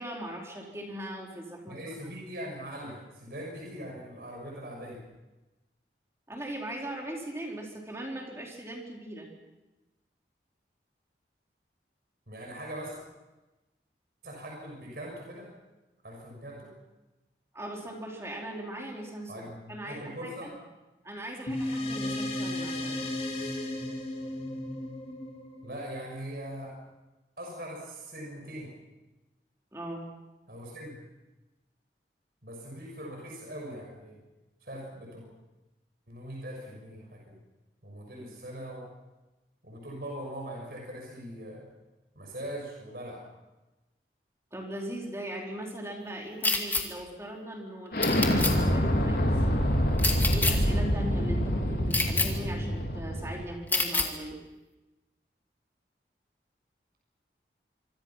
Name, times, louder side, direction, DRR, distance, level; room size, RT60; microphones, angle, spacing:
voice 1, 0.0-1.8 6.3-9.3 17.5-19.3 19.7-20.5 21.0-23.0 29.7-30.1 44.5-49.2 50.3-54.4, right 1 dB, 15° right, 0 dB, 4.5 m, -39 dB
voice 2, 1.7-5.0 12.3-13.0 14.2-15.5 16.0-16.7 19.3-20.5 25.6-26.7 27.4-28.7 30.5-30.9 32.4-34.2 34.6-35.2 36.1-37.4 37.8-38.9 39.6-41.7 42.1-43.2, right 1 dB, 60° right, -1 dB, 6.5 m, -41 dB
sound 1, 21.5-26.3, left 1 dB, 35° left, 4.0 m, -34 dB
sound 2, 46.4-46.8 48.0-48.5 50.0-50.5 51.9-52.3 53.7-54.1, left 3 dB, 10° left, 2.3 m, -26 dB
Explosion, 47.9-53.4, equal, 60° left, 4.2 m, -26 dB
26.0 x 25.0 x 5.9 m, 1.1 s
head